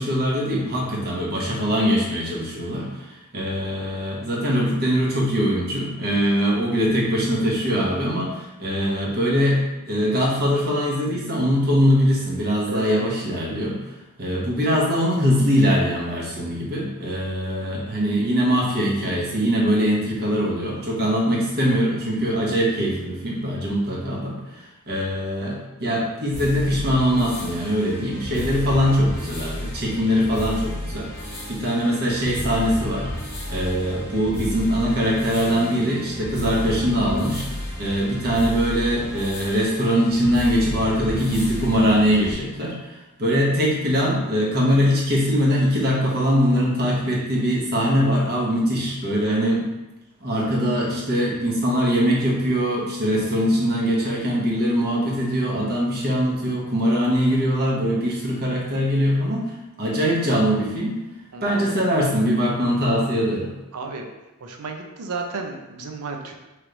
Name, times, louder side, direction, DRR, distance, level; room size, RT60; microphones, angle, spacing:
voice 1, 0.0-9.6 9.9-13.8 14.2-31.1 31.5-33.1 33.5-37.4 37.8-49.7 50.2-61.0 61.4-63.5, equal, 45° right, -3 dB, 1.0 m, -22 dB
voice 2, 12.7-13.0 61.3-61.6 62.9-63.0 63.7-64.1 64.4-66.3, right 3 dB, 75° right, 3 dB, 0.5 m, -33 dB
sound 1, 26.3-42.3, equal, 10° left, 0.9 m, -33 dB
3.3 x 3.1 x 3.9 m, 1.0 s
head